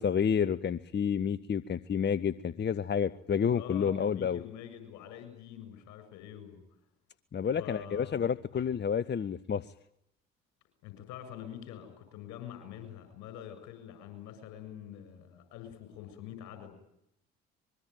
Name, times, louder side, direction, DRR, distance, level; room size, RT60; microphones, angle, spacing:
voice 1, 0.0-4.4 7.3-9.7, left 7 dB, 35° left, 16 dB, 1.0 m, -30 dB
voice 2, 3.5-6.6 7.6-8.7 10.8-16.7, left 10 dB, 65° left, 9 dB, 7.2 m, -46 dB
24.5 x 23.0 x 9.3 m, 0.79 s
figure-of-eight pair, 45°, 31 cm